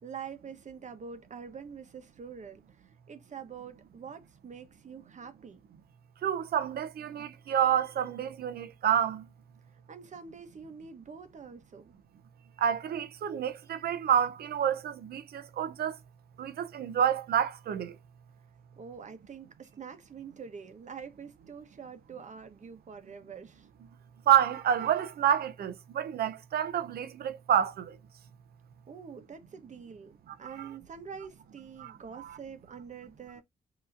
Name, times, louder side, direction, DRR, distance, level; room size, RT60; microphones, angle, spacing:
voice 1, 0.0-5.6 9.9-11.9 18.8-23.7 28.9-30.1 30.4-33.4, right 6 dB, 50° right, 1.2 m, -45 dB
voice 2, 6.2-9.2 12.6-16.0 16.4-17.9 24.3-27.9 30.6-30.7 31.8-32.4, right 9 dB, 70° right, 0.7 m, -28 dB
5.5 x 3.0 x 2.6 m
cardioid pair, 70°, 16 cm